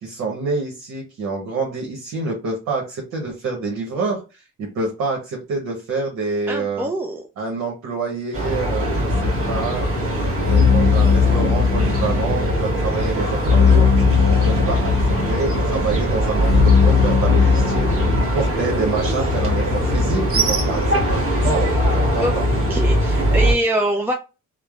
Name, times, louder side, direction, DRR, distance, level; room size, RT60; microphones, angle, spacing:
voice 1, 0.0-6.9 7.4-9.9 10.2-14.1 14.4-21.0 21.4-22.4, right 3 dB, 75° right, 0 dB, 0.9 m, -27 dB
voice 2, 6.5-7.2 22.2-22.3 22.7-24.1, right 1 dB, 5° right, 1 dB, 0.4 m, -23 dB
sound 1, 8.3-23.5, equal, 45° right, 1.3 m, -21 dB
sound 2, 9.1-18.2, left 6 dB, 55° left, 0.7 m, -19 dB
3.1 x 2.0 x 2.3 m, 0.29 s
cardioid pair, 90°, 30 cm